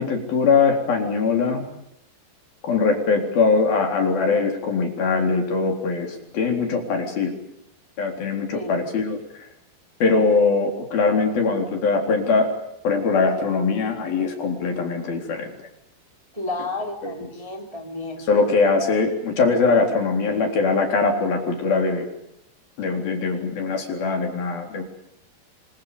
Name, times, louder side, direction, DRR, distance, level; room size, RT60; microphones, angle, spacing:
voice 1, 0.0-1.6 2.6-7.3 8.0-9.5 10.0-12.5 12.8-15.5 17.0-17.1 18.3-22.1 22.8-24.8, left 4 dB, 55° left, 3 dB, 5.5 m, -21 dB
voice 2, 8.5-8.8 16.3-18.2, left 2 dB, 10° right, 2 dB, 2.7 m, -31 dB
29.0 x 24.0 x 6.8 m, 0.79 s
omnidirectional pair, 5.2 m